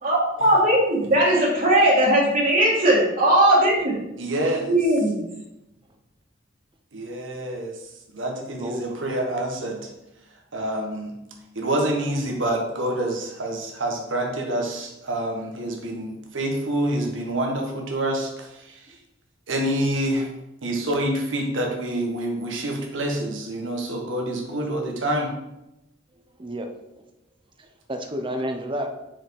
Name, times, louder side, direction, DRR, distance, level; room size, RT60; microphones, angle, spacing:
voice 1, 0.0-4.0 4.7-5.2, right 1 dB, 50° right, -6 dB, 2.0 m, -19 dB
voice 2, 4.2-4.7 6.9-7.7 8.1-9.9 10.5-11.2 11.5-18.5 19.5-20.3 20.6-25.3, right 1 dB, 90° right, 1 dB, 1.5 m, -27 dB
voice 3, 8.6-9.0 26.4-26.7 27.6-28.9, equal, 25° right, 5 dB, 0.8 m, -30 dB
6.1 x 4.9 x 4.8 m, 0.90 s
head